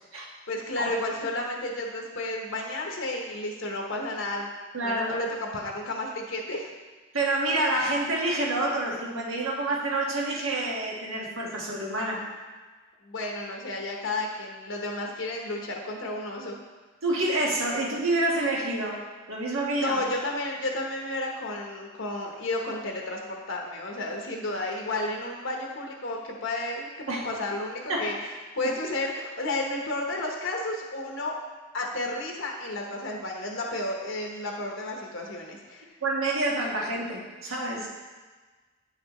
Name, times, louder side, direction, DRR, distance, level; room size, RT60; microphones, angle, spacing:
voice 1, 0.5-4.5 4.8-6.7 13.1-16.6 19.7-28.1 28.6-31.4 31.7-35.8, left 2 dB, 70° left, 0 dB, 1.0 m, -32 dB
voice 2, 4.7-5.2 7.1-12.2 17.0-19.0 19.3-20.0 27.1-27.3 27.9-28.1 28.6-28.7 36.0-37.9, right 2 dB, 85° right, -2 dB, 1.4 m, -28 dB
9.0 x 5.8 x 3.0 m, 1.3 s
head